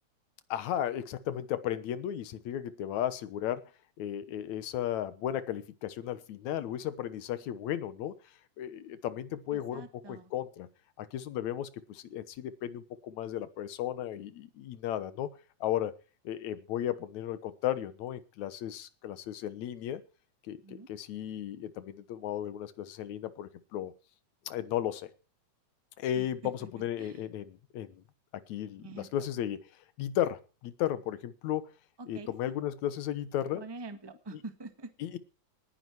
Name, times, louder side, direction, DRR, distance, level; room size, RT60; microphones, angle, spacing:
voice 1, 0.5-3.6 4.0-8.2 8.6-10.7 11.0-15.3 15.6-15.9 16.3-20.0 20.5-23.9 24.5-25.1 26.0-28.0 28.3-29.6 30.0-31.7 32.1-33.6 35.0-35.2, left 11 dB, 70° left, 13 dB, 2.3 m, -35 dB
voice 2, 9.5-10.3 20.6-20.9 26.1-26.3 27.0-27.3 28.8-29.3 32.0-32.5 33.5-34.9, right 3 dB, 30° right, 8 dB, 0.4 m, -45 dB
19.5 x 10.0 x 4.7 m, 0.36 s
omnidirectional pair, 3.6 m